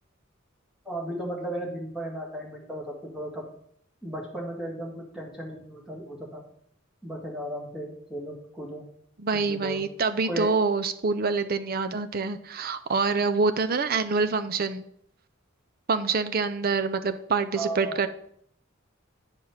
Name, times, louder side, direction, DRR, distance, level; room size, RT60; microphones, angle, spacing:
voice 1, 0.9-3.4 4.0-6.4 7.0-8.8 9.4-9.8 10.2-10.5 17.5-18.0, right 1 dB, 5° right, -3 dB, 2.0 m, -35 dB
voice 2, 9.2-14.8 15.9-18.1, right 4 dB, 45° right, 10 dB, 0.6 m, -26 dB
9.7 x 4.9 x 5.7 m, 0.68 s
head